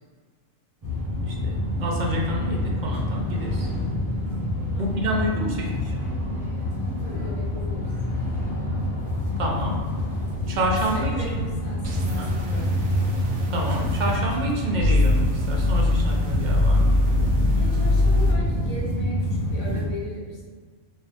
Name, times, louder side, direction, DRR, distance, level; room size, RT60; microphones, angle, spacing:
sound 1, 0.8-19.9, left 1 dB, 15° right, 1.1 m, -27 dB
voice 1, 1.3-3.7 4.8-6.0 9.4-9.8 10.5-11.5 12.2-12.3 13.5-17.0, equal, 50° right, -1 dB, 0.6 m, -28 dB
voice 2, 4.7-5.7 6.8-7.9 10.9-13.4 17.6-20.4, equal, 70° left, -3 dB, 1.3 m, -38 dB
sound 2, 11.8-14.2 14.8-18.3, left 1 dB, 70° right, 0.9 m, -23 dB
3.8 x 2.6 x 3.3 m, 1.5 s
omnidirectional pair, 1.3 m